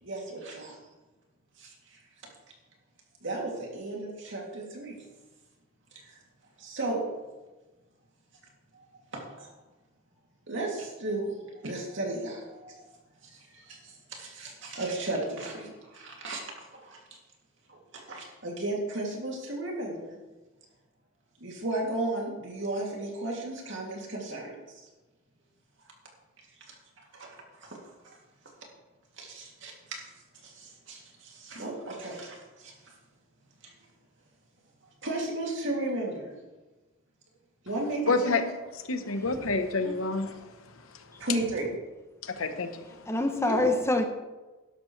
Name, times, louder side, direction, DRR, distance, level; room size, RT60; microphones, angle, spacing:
voice 1, 0.0-0.8 1.6-2.0 3.2-5.0 6.6-7.0 9.1-9.5 10.5-12.8 13.2-17.0 17.7-20.2 21.4-24.8 26.7-26.8 27.1-27.8 28.0-28.2 29.2-30.0 30.4-32.9 33.6-33.7 35.0-36.4 37.6-38.4 39.8-40.0 41.2-41.7 43.4-43.7, right 2 dB, 60° right, -1 dB, 2.7 m, -35 dB
voice 2, 38.1-38.5 38.9-40.6 40.9-41.2 42.2-43.1, left 3 dB, 80° left, 8 dB, 1.1 m, -29 dB
voice 3, 43.1-44.0, left 2 dB, 15° left, 5 dB, 0.8 m, -26 dB
12.5 x 11.0 x 3.3 m, 1.2 s
head